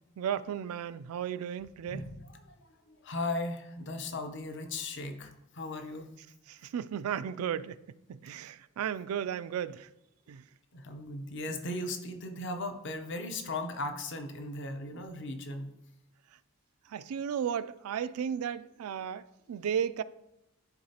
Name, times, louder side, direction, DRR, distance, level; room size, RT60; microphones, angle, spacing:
voice 1, 0.2-2.0 6.7-7.8 8.1-9.9 10.3-10.4 16.9-19.2 19.5-20.0, right 8 dB, 85° right, 0.3 m, -34 dB
voice 2, 1.9-2.5 2.9-6.1 10.7-15.7, left 2 dB, 55° left, 0.8 m, -37 dB
11.5 x 3.8 x 2.9 m
head